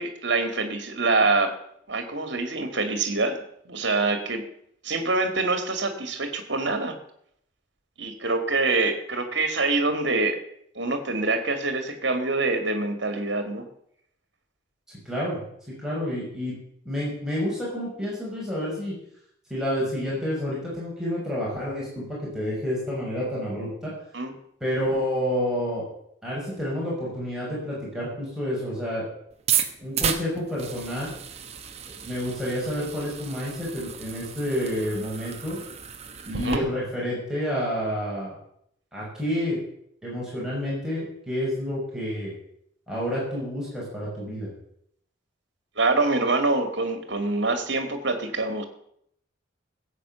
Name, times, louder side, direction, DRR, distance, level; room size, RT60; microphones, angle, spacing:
voice 1, 0.0-1.5 1.9-4.4 4.8-6.9 8.0-10.4 10.8-13.7 24.1-24.3 36.3-36.6 45.8-48.6, right 3 dB, 60° right, 7 dB, 2.2 m, -25 dB
voice 2, 15.1-15.4 15.8-16.5 16.8-19.0 19.5-23.9 24.6-25.9 26.2-29.1 29.8-31.1 32.0-35.6 36.2-38.3 38.9-39.6 40.0-42.3 42.9-44.5, equal, 5° right, -7 dB, 5.8 m, -29 dB
sound 1, 29.3-36.6, right 8 dB, 30° right, 1.2 m, -32 dB
15.0 x 8.3 x 6.9 m, 0.71 s
head